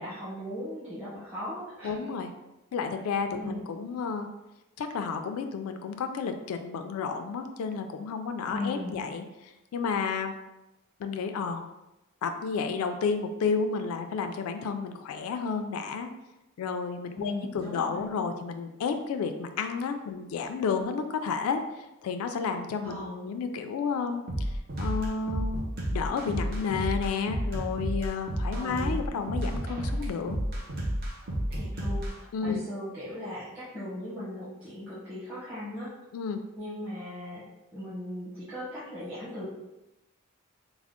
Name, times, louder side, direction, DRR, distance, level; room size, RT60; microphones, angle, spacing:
voice 1, 0.0-1.9 3.3-3.6 8.5-9.0 17.1-18.0 22.8-23.2 28.5-29.0 31.5-35.9 36.6-37.4 37.7-39.5, left 1 dB, 5° right, -14 dB, 0.8 m, -38 dB
voice 2, 1.8-2.3 2.7-4.3 4.8-10.3 11.0-11.7 12.2-16.1 16.6-21.6 22.0-24.5 24.8-25.6 25.9-30.4 32.3-32.6 36.1-36.4, left 5 dB, 80° left, 7 dB, 0.3 m, -31 dB
sound 1, 24.3-32.1, equal, 45° right, 0.6 m, -31 dB
3.5 x 2.0 x 3.6 m, 0.98 s
head